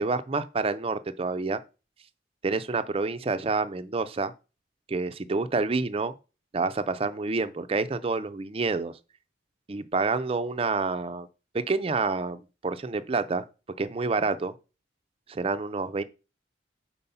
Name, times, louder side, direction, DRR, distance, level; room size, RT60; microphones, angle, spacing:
voice 1, 0.0-1.6 2.4-4.3 4.9-6.1 6.5-8.9 9.7-11.3 11.5-13.4 13.8-14.5 15.3-16.0, right 3 dB, 30° right, 0.4 m, -28 dB
5.5 x 4.4 x 5.5 m
head